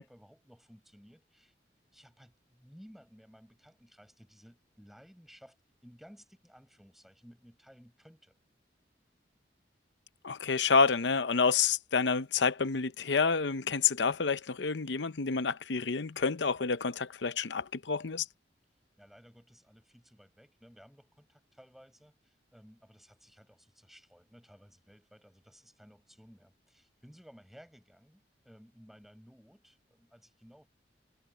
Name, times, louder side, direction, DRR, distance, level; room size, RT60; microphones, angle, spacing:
voice 1, 0.0-1.5 1.9-5.6 5.8-8.4 19.0-30.7, equal, ahead, 7.4 m, -57 dB
voice 2, 10.2-18.2, left 5 dB, 80° left, 0.7 m, -28 dB
head